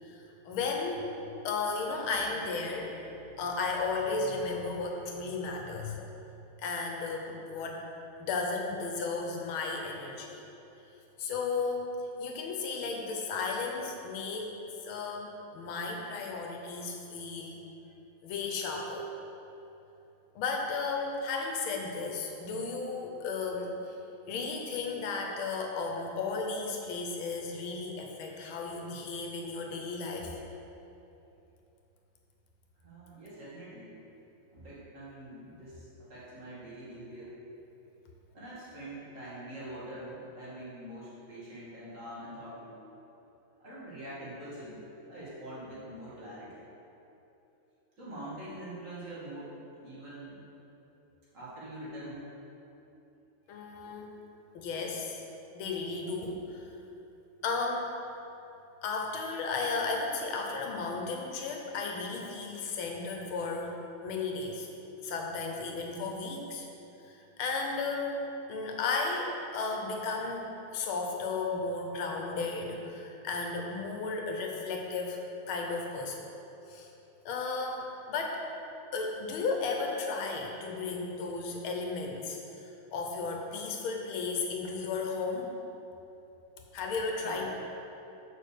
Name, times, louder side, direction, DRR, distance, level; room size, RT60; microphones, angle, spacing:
voice 1, 0.0-1.1 1.4-3.0 3.3-6.0 6.6-7.9 8.2-10.4 11.2-14.5 14.8-17.7 18.2-19.1 20.3-23.9 24.3-30.4 53.5-54.1 54.5-55.2 55.5-56.7 57.4-57.9 58.8-63.8 64.0-64.7 65.0-66.7 67.0-75.2 75.5-76.3 76.7-76.9 77.2-78.4 78.9-85.6 86.7-87.5, left 4 dB, 85° left, 1 dB, 1.7 m, -34 dB
voice 2, 32.8-34.0 34.5-37.4 38.3-42.8 43.6-44.8 45.1-46.6 48.0-50.5 51.3-52.3 87.2-87.5, right 1 dB, 40° right, -9 dB, 2.2 m, -44 dB
6.4 x 4.7 x 6.6 m, 3.0 s
omnidirectional pair, 2.3 m